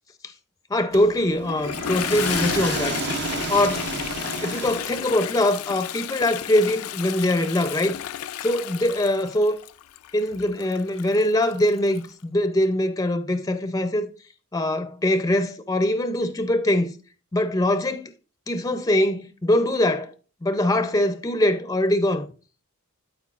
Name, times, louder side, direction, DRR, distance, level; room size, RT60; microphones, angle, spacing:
voice 1, 0.7-3.0 3.5-3.9 4.4-8.0 8.4-9.6 10.1-14.1 14.5-16.9 17.3-18.1 18.5-20.1 20.4-22.3, left 1 dB, 15° left, 0.5 m, -22 dB
sound 1, 0.9-5.3, right 5 dB, 50° right, 0.6 m, -32 dB
Toilet flush, 1.5-12.1, left 11 dB, 75° left, 0.4 m, -32 dB
12.5 x 4.5 x 2.4 m
head